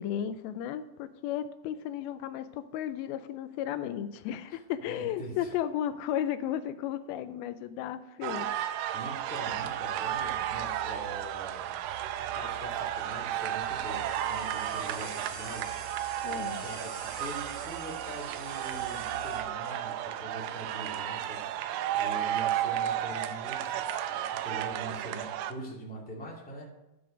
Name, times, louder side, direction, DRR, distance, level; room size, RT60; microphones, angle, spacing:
voice 1, 0.0-8.5 16.2-16.6, left 10 dB, 85° left, 12 dB, 2.4 m, -34 dB
voice 2, 4.8-5.5 8.9-11.8 12.2-26.7, right 1 dB, 5° left, -4 dB, 1.4 m, -43 dB
sound 1, 8.2-25.5, right 11 dB, 90° right, 2.5 m, -33 dB
sound 2, 9.4-19.4, right 3 dB, 35° right, 1.9 m, -48 dB
13.0 x 5.0 x 5.0 m, 0.97 s
omnidirectional pair, 4.3 m